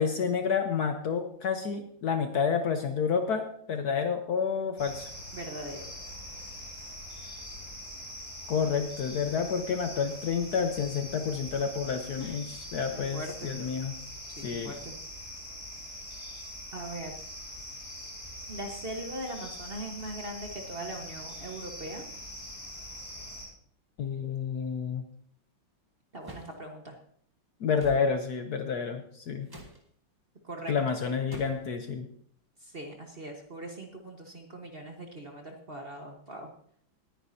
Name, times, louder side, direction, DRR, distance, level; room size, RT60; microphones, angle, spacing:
voice 1, 0.0-5.1 8.5-13.9 14.4-14.7 24.0-25.0 27.6-29.5 30.7-32.1, left 6 dB, 60° left, 6 dB, 1.2 m, -29 dB
sound 1, 4.8-23.5, left 1 dB, 15° left, 5.2 m, -43 dB
voice 2, 5.3-5.9 12.1-12.4 12.9-13.5 14.3-14.9 16.7-17.2 18.5-22.0 26.1-26.9 30.4-30.7 32.6-36.5, right 1 dB, 30° right, 2 dB, 1.3 m, -40 dB
sound 2, 26.2-26.6 27.8-28.1 29.5-29.8 31.3-31.7, right 1 dB, 10° right, 1.5 m, -44 dB
19.5 x 9.5 x 2.8 m, 0.62 s
omnidirectional pair, 2.2 m